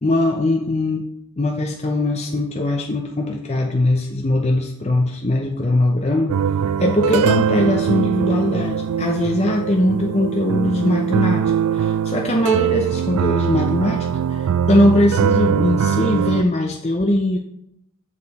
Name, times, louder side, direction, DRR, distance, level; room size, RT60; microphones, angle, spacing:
voice 1, 0.0-1.0 1.4-6.3 6.8-17.4, left 1 dB, 30° left, 2 dB, 0.6 m, -20 dB
sound 1, 6.3-16.4, right 8 dB, 85° right, 0.3 m, -21 dB
7.2 x 6.8 x 4.1 m, 0.79 s
head